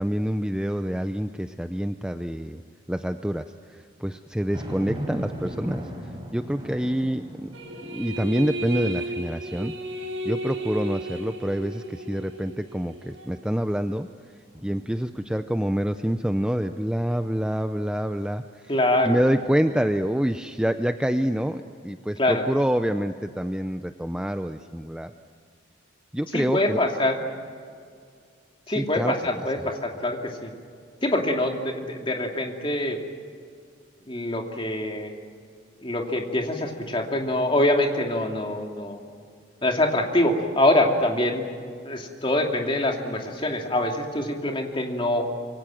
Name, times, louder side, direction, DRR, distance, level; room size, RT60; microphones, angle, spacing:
voice 1, 0.0-2.6 2.9-7.5 7.9-9.7 10.2-14.1 14.6-18.7 19.0-25.1 26.1-26.8 28.7-29.4, equal, 5° right, 8 dB, 0.6 m, -27 dB
sound 1, 4.5-10.1 10.6-10.7 14.5-15.6, equal, 25° right, 4.2 m, -39 dB
sound 2, 7.5-13.4, right 1 dB, 90° right, 6.7 m, -34 dB
voice 2, 18.7-19.2 22.2-22.4 26.3-27.2 28.7-30.5 31.0-33.0 34.1-35.1 35.8-39.0 39.6-41.4 41.8-45.2, left 1 dB, 25° left, 2 dB, 2.8 m, -24 dB
26.0 x 24.0 x 7.7 m, 2.2 s
head